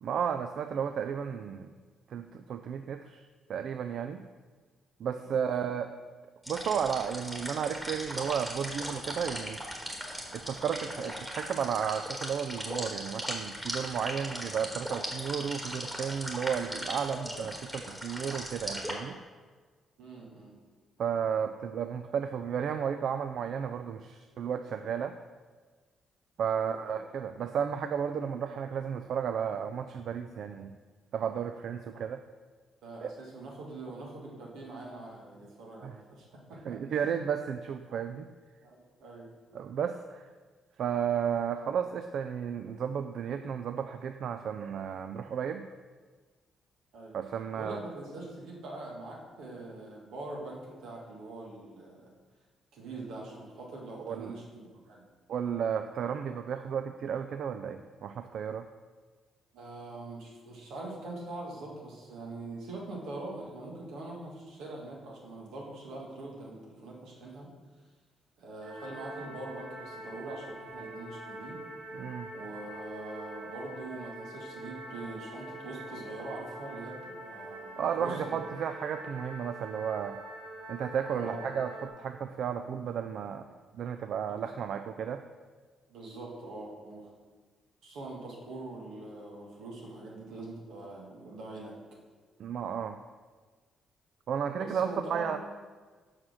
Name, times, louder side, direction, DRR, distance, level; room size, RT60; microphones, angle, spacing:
voice 1, 0.0-1.7 2.1-4.2 5.0-5.9 6.5-9.6 10.3-19.2 21.0-25.2 26.4-30.7 31.1-32.2 33.0-33.1 35.8-36.0 36.7-38.3 39.5-40.3 40.8-45.7 47.1-47.8 54.0-54.3 55.3-58.7 71.9-72.3 77.8-80.2 80.7-83.5 83.7-85.2 92.4-93.0 94.3-95.4, right 7 dB, 65° right, 8 dB, 0.3 m, -33 dB
voice 2, 5.1-5.7 20.0-20.6 26.6-27.0 32.8-36.6 36.9-37.1 38.6-39.3 46.9-47.2 47.5-52.1 52.7-55.1 59.5-67.5 68.4-71.6 72.3-78.4 81.1-81.5 84.3-84.4 85.9-87.1 87.8-91.7 94.6-95.4, right 2 dB, 85° right, -2 dB, 1.7 m, -43 dB
sound 1, 6.4-18.9, equal, 5° right, 1.5 m, -38 dB
sound 2, 68.6-81.9, right 1 dB, 50° right, 1.2 m, -44 dB
5.7 x 4.9 x 6.2 m, 1.4 s
cardioid pair, 90°, 0 cm